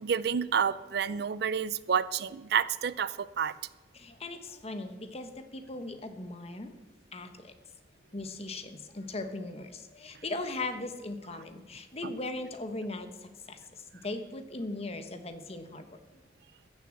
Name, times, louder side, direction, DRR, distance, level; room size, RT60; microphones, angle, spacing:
voice 1, 0.0-3.5 12.0-12.1, right 7 dB, 65° right, 17 dB, 0.5 m, -29 dB
voice 2, 3.9-6.7 7.1-7.5 8.1-16.0, left 2 dB, 35° left, 8 dB, 1.1 m, -39 dB
14.5 x 7.1 x 7.7 m, 1.1 s
head